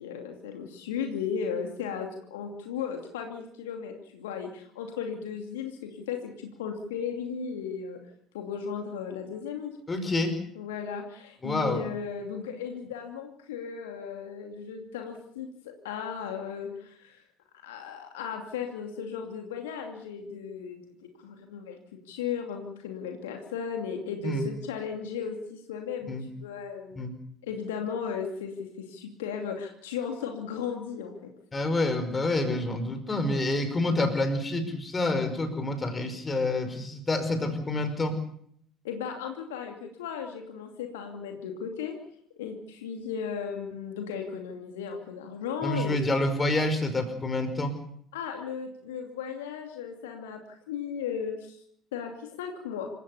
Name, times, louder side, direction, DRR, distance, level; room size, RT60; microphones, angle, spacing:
voice 1, 0.0-8.0 8.3-9.8 10.5-15.5 15.8-17.2 17.6-20.9 21.2-27.1 27.4-31.3 32.4-32.6 38.8-41.9 42.4-45.9 48.1-51.6 51.9-52.9, left 7 dB, 70° left, 4 dB, 2.6 m, -36 dB
voice 2, 9.9-10.4 11.4-11.8 24.2-24.4 26.1-26.2 26.9-27.1 31.5-38.1 45.6-47.7, left 2 dB, 25° left, 8 dB, 5.2 m, -28 dB
27.5 x 16.0 x 7.1 m, 0.67 s
figure-of-eight pair, 60°, 0 cm